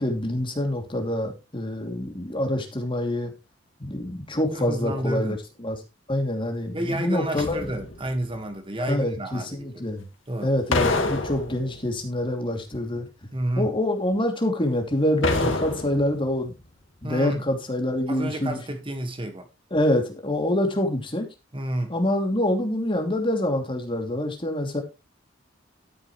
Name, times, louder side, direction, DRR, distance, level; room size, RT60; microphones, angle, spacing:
voice 1, 0.0-3.3 3.8-5.8 6.1-7.6 8.9-10.1 10.4-13.1 13.6-16.5 17.0-18.6 19.7-21.3 21.9-24.8, left 1 dB, 25° left, 2.8 m, -26 dB
voice 2, 4.4-5.4 6.7-9.8 10.3-10.5 13.3-13.7 15.4-15.6 17.0-17.4 18.1-19.5 21.5-21.9, right 1 dB, 25° right, 1.6 m, -30 dB
sound 1, 7.4-8.2 10.7-12.0 15.2-16.3 16.6-16.7, left 3 dB, 80° left, 2.2 m, -27 dB
12.5 x 9.7 x 3.2 m
head